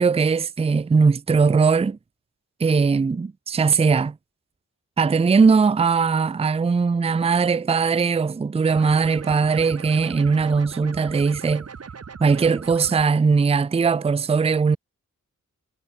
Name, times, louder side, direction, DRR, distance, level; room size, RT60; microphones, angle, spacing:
voice 1, 0.0-2.0 2.6-4.1 5.0-11.7 12.2-14.8, right 5 dB, 20° right, 0.4 m, -20 dB
sound 1, 8.7-13.1, right 6 dB, 55° right, 2.0 m, -39 dB
wide cardioid pair, 125°, 30 cm